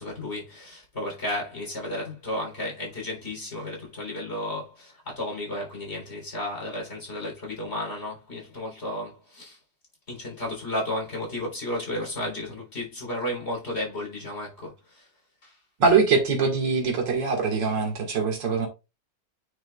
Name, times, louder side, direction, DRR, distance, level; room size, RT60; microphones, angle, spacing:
voice 1, 0.0-9.6 10.1-15.1 15.4-15.5, left 1 dB, 35° left, 3.9 m, -33 dB
voice 2, 15.8-18.7, right 5 dB, 75° right, 2.6 m, -23 dB
9.3 x 5.9 x 2.4 m
omnidirectional pair, 2.0 m